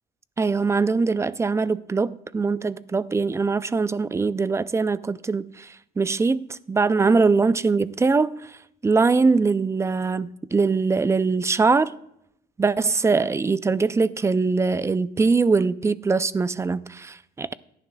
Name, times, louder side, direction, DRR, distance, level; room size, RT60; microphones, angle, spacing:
voice 1, 0.4-8.6 8.8-11.9 12.6-17.5, right 4 dB, 15° right, 0.4 m, -22 dB
17.0 x 10.5 x 2.3 m
cardioid pair, 110°, 17 cm